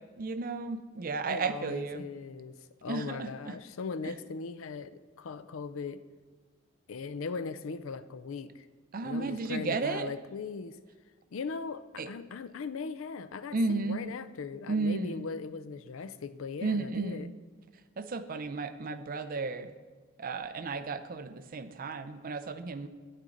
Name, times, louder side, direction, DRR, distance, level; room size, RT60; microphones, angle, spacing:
voice 1, 0.2-2.0 2.9-3.6 8.9-10.1 12.0-12.1 13.5-14.0 14.7-15.2 16.6-17.3 18.0-19.7 20.2-22.9, right 3 dB, 45° right, 10 dB, 0.5 m, -33 dB
voice 2, 1.3-2.5 2.8-6.0 6.9-8.7 9.0-10.8 11.3-17.3, left 5 dB, 75° left, 13 dB, 0.5 m, -39 dB
9.2 x 8.9 x 3.9 m, 1.5 s
head